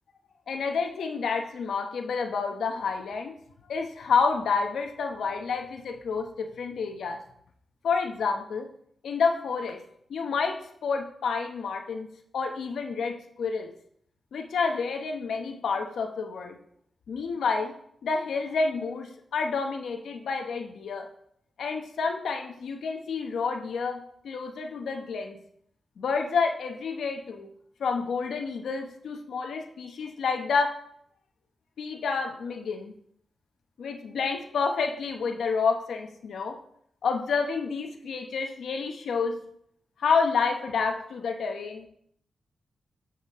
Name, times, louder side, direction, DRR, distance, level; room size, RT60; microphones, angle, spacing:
voice 1, 0.5-3.3 3.7-7.2 7.8-8.7 9.0-9.8 10.1-12.1 12.3-13.7 14.3-16.6 17.1-17.7 18.0-21.1 21.6-25.4 26.0-27.5 27.8-30.8 31.8-32.9 33.8-36.6 37.0-39.4 40.0-41.9, left 5 dB, 85° left, 5 dB, 0.9 m, -29 dB
7.4 x 7.1 x 3.6 m, 0.69 s
wide cardioid pair, 115°, 0 cm